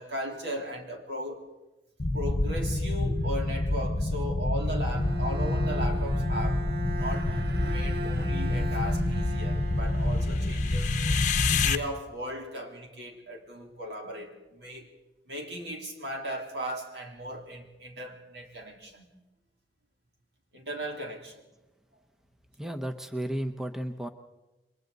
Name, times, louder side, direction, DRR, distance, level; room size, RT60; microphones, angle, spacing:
voice 1, 0.0-1.5 2.1-6.7 7.0-7.4 7.7-10.9 11.5-14.9 15.3-19.1 20.5-21.3 22.6-22.7, equal, 75° right, 3.6 m, -37 dB
sound 1, 2.0-11.8, left 2 dB, 45° left, 0.9 m, -27 dB
Bowed string instrument, 4.9-10.9, right 1 dB, 60° right, 1.1 m, -38 dB
voice 2, 22.6-24.1, right 1 dB, 5° right, 0.8 m, -33 dB
29.0 x 23.5 x 4.0 m
head